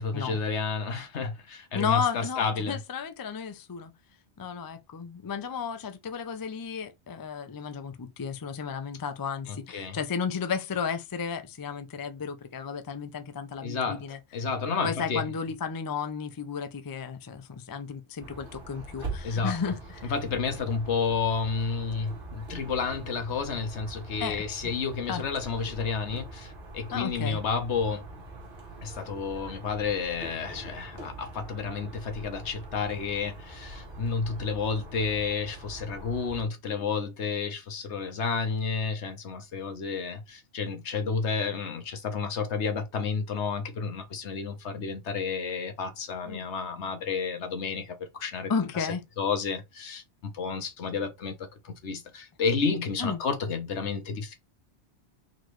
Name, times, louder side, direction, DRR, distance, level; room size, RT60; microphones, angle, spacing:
voice 1, 0.0-2.8 9.5-10.0 13.6-14.0 14.3-15.2 19.2-19.6 20.1-28.0 28.8-54.3, left 5 dB, 85° left, 1.2 m, -31 dB
voice 2, 1.7-3.9 4.4-14.2 14.8-20.1 24.2-24.4 25.1-25.2 26.9-27.4 46.2-46.4 48.5-49.0 53.0-53.2, left 6 dB, 35° left, 0.3 m, -33 dB
sound 1, 18.2-36.5, right 2 dB, 50° right, 1.5 m, -43 dB
4.0 x 3.0 x 3.1 m
omnidirectional pair, 1.1 m